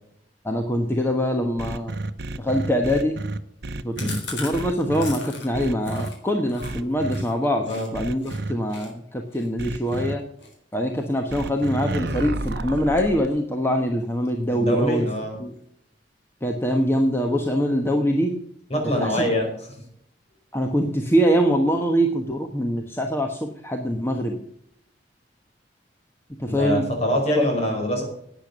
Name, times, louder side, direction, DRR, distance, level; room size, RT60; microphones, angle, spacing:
voice 1, 0.4-1.9 2.4-3.2 3.8-10.2 10.7-15.1 15.4-15.5 16.4-18.4 19.0-19.2 20.5-24.4 26.4-26.9 27.4-27.5, equal, 15° left, 3 dB, 1.2 m, -23 dB
sound 1, 1.6-4.2 4.5-5.1 5.5-6.1 6.6-7.2 7.9-8.5 9.6-10.1 11.3-13.3, right 2 dB, 65° right, 0.8 m, -30 dB
Chewing mastication, 4.0-7.9 8.2-8.4 8.7-11.7 12.1-12.4 12.7-13.6 13.9-14.0 14.3-14.4 14.7-15.2, left 3 dB, 85° left, 4.0 m, -40 dB
voice 2, 14.5-15.4 18.7-19.5 26.5-28.0, equal, 35° left, 1 dB, 5.0 m, -24 dB
11.5 x 9.2 x 6.8 m, 0.70 s
head